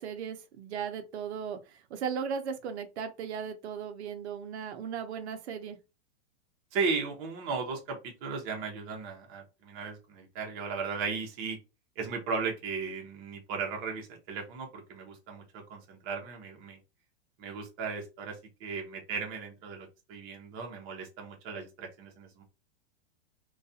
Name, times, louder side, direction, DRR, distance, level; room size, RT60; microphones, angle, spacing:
voice 1, 0.0-5.8, right 7 dB, 85° right, 0.6 m, -37 dB
voice 2, 6.7-11.6 12.0-16.8 17.4-22.4, right 5 dB, 30° right, 0.7 m, -36 dB
2.3 x 2.3 x 2.6 m
supercardioid pair, 155°, 33 cm